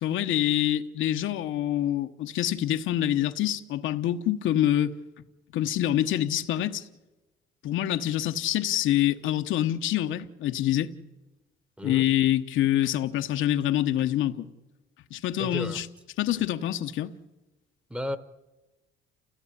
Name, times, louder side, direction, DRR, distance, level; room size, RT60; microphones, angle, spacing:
voice 1, 0.0-4.9 5.5-6.8 7.6-10.9 11.8-14.5 15.1-15.9 16.2-17.1, left 12 dB, 80° left, 1.1 m, -26 dB
voice 2, 15.4-15.8 17.9-18.2, equal, 5° right, 1.0 m, -33 dB
29.0 x 16.5 x 9.8 m
cardioid pair, 165°, 20 cm